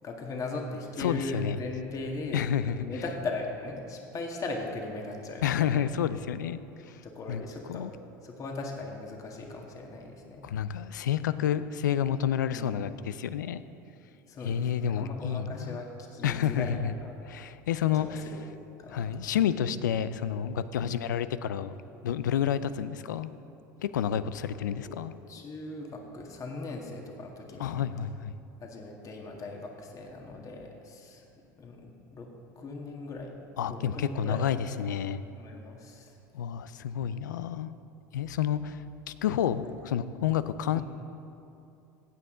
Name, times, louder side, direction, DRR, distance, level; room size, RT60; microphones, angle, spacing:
voice 1, 0.0-2.4 2.8-5.7 7.0-7.9 8.2-10.4 12.5-12.8 14.3-17.1 17.9-18.5 18.8-19.4 20.8-21.0 24.8-27.8 28.6-32.3 32.6-34.5 35.3-36.1 39.6-39.7 40.7-40.8, left 3 dB, 35° left, 1 dB, 1.7 m, -39 dB
voice 2, 1.0-1.6 2.3-2.8 5.4-7.0 7.3-7.4 7.7-7.9 10.4-13.6 14.4-15.8 16.2-16.9 17.2-18.3 18.9-21.7 22.0-23.3 23.8-25.1 27.6-28.3 33.6-35.2 36.3-37.7 38.1-40.8, left 9 dB, 90° left, 14 dB, 0.4 m, -29 dB
16.0 x 8.6 x 3.8 m, 2.7 s
hypercardioid pair, 90°, 10 cm